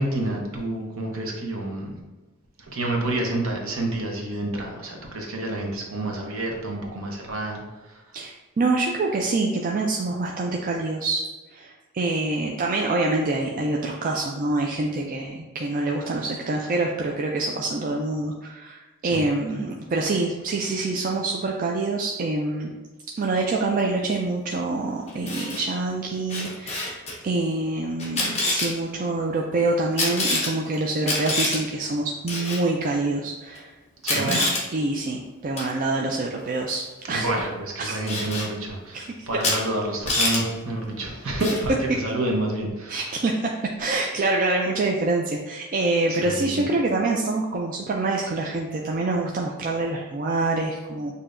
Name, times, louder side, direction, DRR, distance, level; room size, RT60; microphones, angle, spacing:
voice 1, 0.0-1.9 2.7-7.6 19.0-19.2 34.0-34.4 37.1-43.0 46.1-46.6, right 1 dB, 65° right, 0 dB, 0.9 m, -28 dB
voice 2, 8.1-11.2 11.5-22.7 23.2-33.7 34.1-37.3 37.8-38.1 38.9-39.1 39.4-39.5 42.9-43.5 43.8-51.1, right 2 dB, 40° right, -1 dB, 0.3 m, -26 dB
Camera, 25.1-25.6 26.3-27.1 28.0-28.7 30.0-30.5 31.0-31.6 32.3-32.6 33.6-33.7 34.0-34.6 35.6-35.7 38.1-38.5 39.4-39.6 39.8-40.4 41.4-41.7, left 2 dB, 30° left, 1.0 m, -25 dB
6.6 x 2.7 x 2.5 m, 1.2 s
head